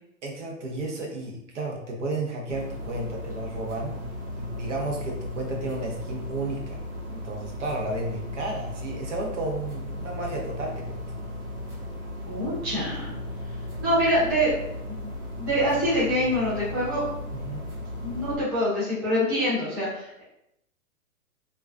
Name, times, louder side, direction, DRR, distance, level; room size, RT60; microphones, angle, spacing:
voice 1, 0.2-4.0 4.4-6.8 7.1-11.0 17.3-17.7, right 2 dB, 55° right, 0 dB, 0.7 m, -33 dB
sound 1, 2.5-18.4, left 1 dB, 80° right, 1.0 m, -36 dB
voice 2, 12.3-13.1 13.8-14.5 14.9-15.1 15.4-17.0 18.0-20.2, equal, 15° right, -10 dB, 0.5 m, -25 dB
2.3 x 2.2 x 2.4 m, 0.80 s
hypercardioid pair, 155°, 43 cm